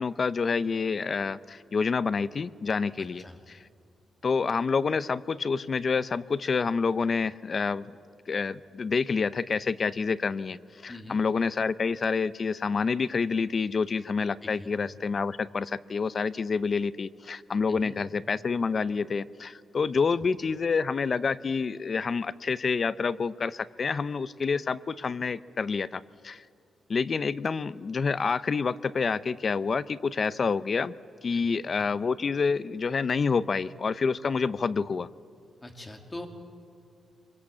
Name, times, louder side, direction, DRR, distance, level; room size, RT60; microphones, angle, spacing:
voice 1, 0.0-3.6 4.2-7.9 8.3-10.6 10.8-26.4 26.9-30.9 31.2-35.1, left 5 dB, 35° left, 16 dB, 0.5 m, -28 dB
voice 2, 31.3-31.6 35.6-36.3, left 1 dB, 15° left, 3 dB, 2.3 m, -42 dB
25.0 x 22.5 x 8.5 m, 2.4 s
wide cardioid pair, 165°, 0 cm